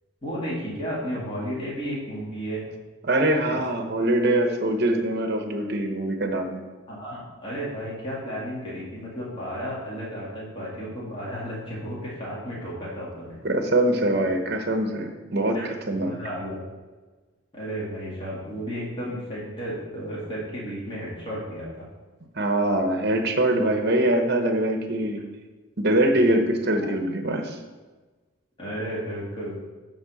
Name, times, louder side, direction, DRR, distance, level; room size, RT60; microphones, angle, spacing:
voice 1, 0.2-2.6 6.9-13.4 15.5-16.6 17.5-21.9 26.1-26.3 26.8-26.9 28.6-29.6, equal, 25° left, -7 dB, 2.2 m, -33 dB
voice 2, 3.0-6.6 13.4-16.2 22.4-25.2 25.8-27.6, right 1 dB, 50° right, 5 dB, 0.9 m, -23 dB
9.3 x 3.6 x 6.3 m, 1.3 s
head